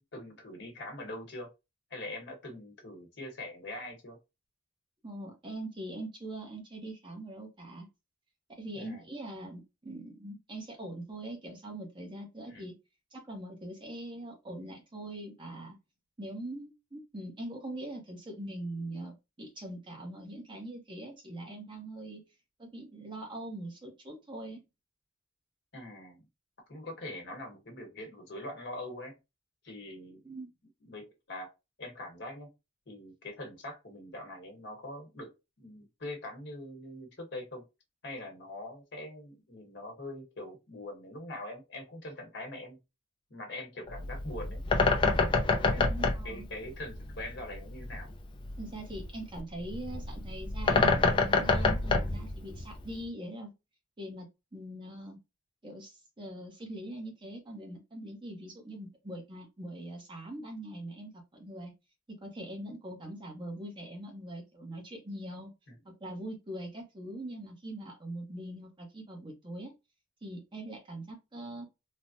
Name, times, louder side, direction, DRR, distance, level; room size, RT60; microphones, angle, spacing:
voice 1, 0.0-1.5 1.9-4.2 8.7-9.0 12.5-12.7 25.7-26.2 26.7-29.1 29.6-30.2 30.8-31.5 31.8-32.5 32.9-35.3 35.6-37.6 38.0-42.8 43.3-44.6 45.1-48.1, left 1 dB, 60° left, 2 dB, 1.1 m, -43 dB
voice 2, 5.0-7.9 8.6-12.7 13.1-15.8 16.2-22.2 22.6-24.6 30.2-30.5 45.8-46.5 48.6-53.5 54.0-54.3 54.5-55.2 55.6-61.7 62.2-65.5 65.8-69.7 70.2-71.7, right 1 dB, 25° right, 1 dB, 0.7 m, -42 dB
Bird, 43.9-53.0, left 3 dB, 25° left, 0.4 m, -28 dB
3.3 x 2.1 x 2.5 m, 0.25 s
head